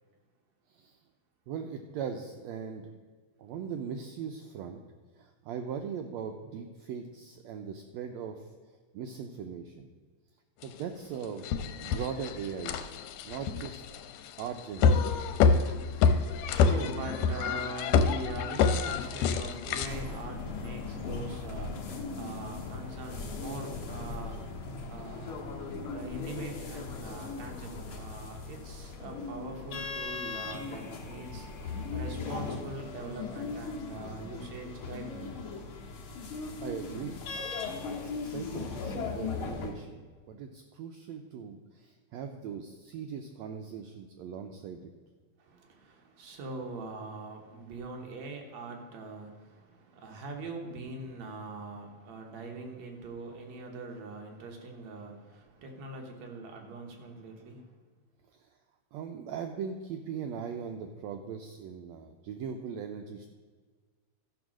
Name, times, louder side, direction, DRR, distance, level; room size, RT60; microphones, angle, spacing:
voice 1, 1.5-2.9 3.4-4.8 5.2-8.5 8.9-9.9 10.6-11.5 11.8-12.9 13.2-15.5 15.9-16.1 36.3-37.2 37.8-40.0 40.3-44.9 58.3-58.5 58.9-63.3, right 7 dB, 85° right, 5 dB, 1.5 m, -40 dB
sound 1, 10.6-10.7 11.2-19.9, left 5 dB, 90° left, 2.2 m, -27 dB
voice 2, 15.4-35.4 45.4-57.7, right 3 dB, 65° right, 2 dB, 2.3 m, -43 dB
sound 2, 19.9-39.7, left 4 dB, 55° left, 1.7 m, -38 dB
13.0 x 5.4 x 6.2 m, 1.5 s
omnidirectional pair, 3.8 m